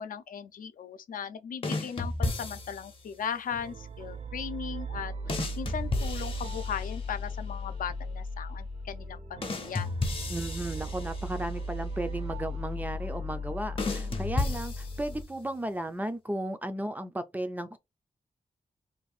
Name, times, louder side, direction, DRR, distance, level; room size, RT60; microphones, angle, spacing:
voice 1, 0.0-9.9, left 7 dB, 85° left, 0.5 m, -38 dB
sound 1, 1.6-3.0 5.3-7.3 9.4-11.6 13.8-15.4, left 3 dB, 40° left, 0.6 m, -33 dB
sound 2, 3.5-15.2, equal, 55° right, 0.6 m, -37 dB
voice 2, 10.3-17.8, right 1 dB, 10° right, 0.3 m, -35 dB
2.6 x 2.4 x 4.1 m
wide cardioid pair, 170°, 14 cm